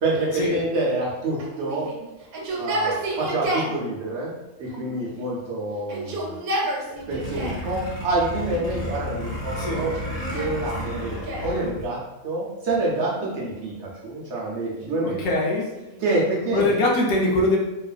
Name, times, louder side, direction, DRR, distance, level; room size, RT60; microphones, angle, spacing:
voice 1, 0.0-1.9 2.6-4.3 4.6-6.4 6.9-9.9 10.3-15.4 16.0-16.7, right 2 dB, 60° right, -4 dB, 0.8 m, -27 dB
Yell, 1.4-3.8 4.7-5.4 5.8-7.7 8.4-9.1 9.8-11.6 12.9-13.8 14.6-16.4, right 1 dB, 85° right, 1.1 m, -32 dB
sound 1, 7.0-11.9, left 1 dB, 10° right, 1.1 m, -32 dB
voice 2, 15.0-15.7 16.5-17.6, left 2 dB, 85° left, -1 dB, 1.1 m, -22 dB
2.8 x 2.4 x 2.3 m, 0.98 s
omnidirectional pair, 1.5 m